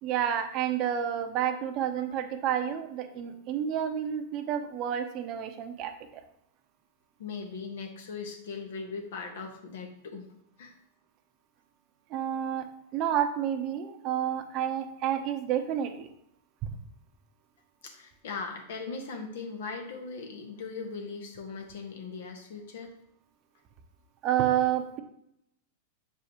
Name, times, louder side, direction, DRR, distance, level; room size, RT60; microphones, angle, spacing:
voice 1, 0.0-5.9 12.1-12.7 12.9-16.1 24.2-25.0, right 10 dB, 45° right, 8 dB, 0.7 m, -29 dB
voice 2, 7.2-10.3 10.6-10.7 17.8-22.9, left 4 dB, 75° left, 3 dB, 1.2 m, -39 dB
6.8 x 4.9 x 2.9 m, 0.76 s
hypercardioid pair, 110°, 0 cm